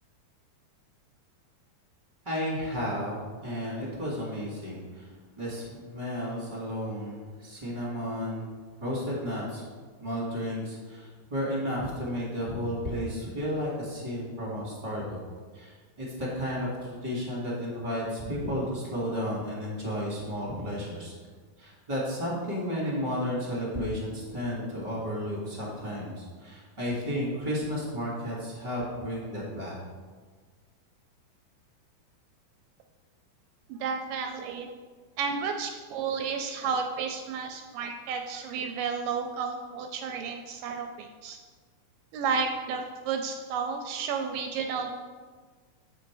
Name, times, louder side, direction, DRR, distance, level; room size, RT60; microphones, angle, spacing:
voice 1, 2.2-8.5 8.8-9.6 10.0-15.2 15.5-21.1 21.6-29.8, equal, 20° right, -6 dB, 1.2 m, -33 dB
voice 2, 33.7-34.7 35.2-41.4 42.1-45.0, right 5 dB, 80° right, 4 dB, 2.0 m, -32 dB
7.7 x 5.0 x 4.7 m, 1.5 s
omnidirectional pair, 4.2 m